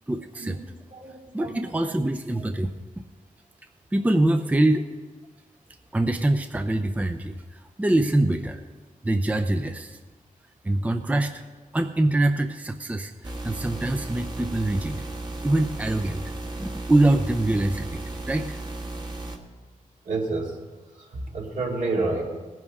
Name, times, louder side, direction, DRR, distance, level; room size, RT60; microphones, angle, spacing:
voice 1, 0.1-0.6 1.3-2.7 3.9-4.8 5.9-8.6 9.0-10.0 10.6-11.4 11.7-15.0 15.4-16.3 16.6-18.0 18.3-18.6, right 1 dB, 10° right, 7 dB, 0.5 m, -24 dB
voice 2, 0.9-2.0 20.0-20.6 21.0-22.2, right 3 dB, 65° right, -1 dB, 2.5 m, -30 dB
sound 1, 13.2-19.4, right 2 dB, 30° right, 1.4 m, -35 dB
18.5 x 10.5 x 3.7 m, 1.3 s
wide cardioid pair, 120°, 14 cm